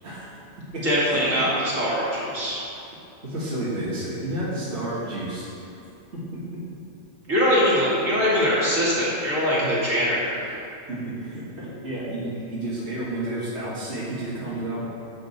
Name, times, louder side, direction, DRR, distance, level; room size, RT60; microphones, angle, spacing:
voice 1, 0.0-0.4 0.7-1.2 3.2-5.5 6.1-6.6 9.6-9.7 10.9-14.9, right 1 dB, 60° right, -9 dB, 2.1 m, -31 dB
voice 2, 0.8-2.6 7.3-10.5, equal, 85° right, -8 dB, 2.8 m, -22 dB
11.0 x 6.9 x 4.3 m, 2.7 s
omnidirectional pair, 1.3 m